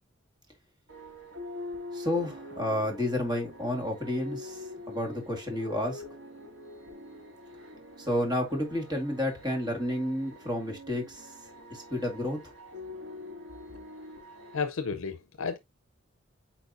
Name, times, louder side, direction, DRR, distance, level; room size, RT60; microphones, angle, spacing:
sound 1, 0.9-14.6, left 2 dB, 65° right, 2.4 m, -45 dB
voice 1, 1.9-6.0 8.0-11.3 11.7-12.4, left 1 dB, 20° right, 2.1 m, -31 dB
voice 2, 14.5-15.6, left 5 dB, 75° left, 0.6 m, -32 dB
8.4 x 4.6 x 2.5 m
head